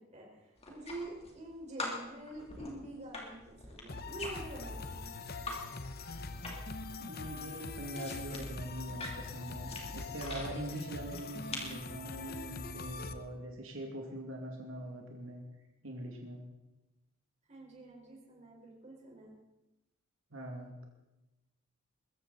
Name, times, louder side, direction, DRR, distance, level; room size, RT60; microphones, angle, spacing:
voice 1, 0.0-5.1 17.5-19.4, right 2 dB, 35° right, -2 dB, 4.8 m, -47 dB
sound 1, 0.6-1.5 1.8-5.6 5.9-6.8 7.1-10.5 11.1-11.8, left 2 dB, 30° left, 3.2 m, -44 dB
sound 2, 3.9-13.1, left 3 dB, 50° left, 1.0 m, -43 dB
voice 2, 7.0-15.4 15.8-16.4 20.3-20.8, right 1 dB, 90° right, 1 dB, 2.5 m, -43 dB
22.0 x 14.5 x 4.2 m, 0.98 s
head